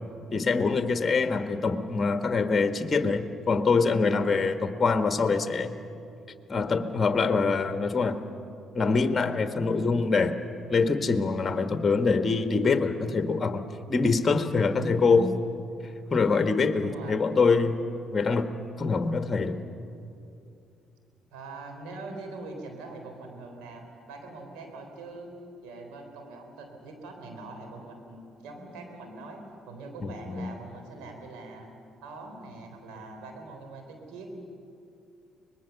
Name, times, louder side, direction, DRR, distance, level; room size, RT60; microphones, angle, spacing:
voice 1, 0.3-5.7 6.5-8.2 8.7-10.4 10.7-13.6 13.9-15.4 16.1-17.8 18.1-19.6 30.0-30.5, left 4 dB, 35° left, 8 dB, 1.4 m, -24 dB
voice 2, 16.8-17.1 21.3-25.3 25.6-31.7 32.0-34.3, right 3 dB, 80° right, 3 dB, 3.7 m, -43 dB
24.0 x 20.0 x 7.1 m, 2.7 s
supercardioid pair, 60°, 0 cm